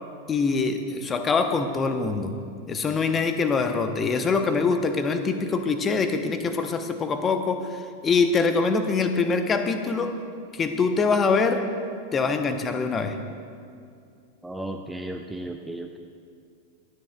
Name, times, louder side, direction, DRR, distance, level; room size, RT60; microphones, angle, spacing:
voice 1, 0.3-2.4 2.7-10.2 10.5-11.7 12.1-13.2, left 4 dB, 20° left, 8 dB, 0.7 m, -24 dB
voice 2, 14.4-16.0, right 1 dB, 5° right, 4 dB, 0.5 m, -34 dB
23.0 x 9.6 x 2.3 m, 2.3 s
figure-of-eight pair, 90°, 0 cm